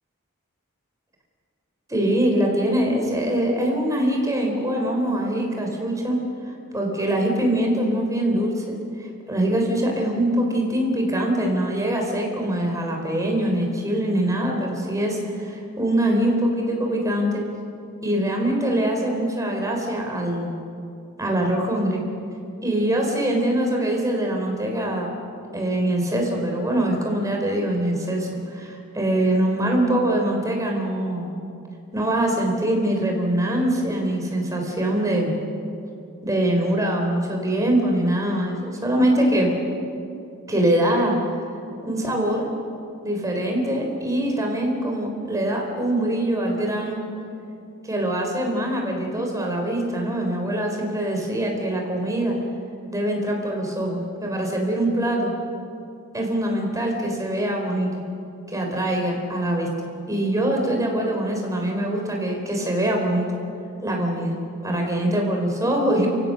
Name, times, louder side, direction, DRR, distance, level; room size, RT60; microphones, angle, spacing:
voice 1, 1.9-6.2 6.7-17.4 18.0-20.6 21.2-22.0 22.6-25.2 25.5-31.3 31.9-35.3 36.2-39.5 40.5-41.1 41.8-42.5 43.0-47.0 47.8-52.4 52.9-55.3 56.1-57.9 58.5-59.7 60.1-63.3 63.8-64.3 64.6-66.1, right 1 dB, 15° right, 1 dB, 3.9 m, -23 dB
29.5 x 16.0 x 6.5 m, 2.6 s
head